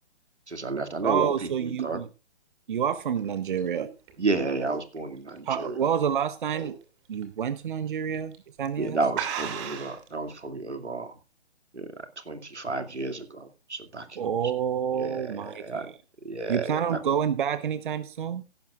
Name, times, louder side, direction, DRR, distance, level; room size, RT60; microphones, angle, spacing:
voice 1, 0.5-2.0 4.2-5.9 8.8-11.1 11.7-11.9 12.2-14.3 15.0-15.9 16.2-17.0, right 3 dB, 85° right, 8 dB, 2.4 m, -31 dB
voice 2, 1.0-2.1 2.7-3.9 5.4-6.7 7.1-9.0 14.2-15.9 16.5-18.4, right 8 dB, 50° right, 14 dB, 0.9 m, -28 dB
sound 1, 3.0-6.1 6.5-6.8 7.2-7.3 8.1-8.4 8.7-8.8 9.1-10.1, right 9 dB, 25° right, 2.5 m, -36 dB
16.0 x 12.0 x 2.4 m, 0.31 s
figure-of-eight pair, 140°, 33 cm